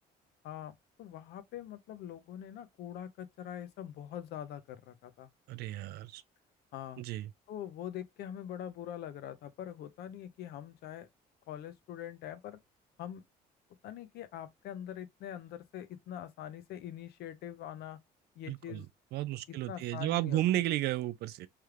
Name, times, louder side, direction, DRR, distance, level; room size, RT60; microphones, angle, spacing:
voice 1, 0.4-5.3 6.7-7.0 7.5-11.1 11.5-12.6 13.0-13.2 13.8-18.0 18.4-18.9 19.5-20.4, left 10 dB, 75° left, 0.6 m, -43 dB
voice 2, 5.5-6.2 7.0-7.3 18.5-18.9 19.1-21.5, right 15 dB, 75° right, 0.4 m, -33 dB
3.3 x 2.3 x 3.1 m
cardioid pair, 110°, 17 cm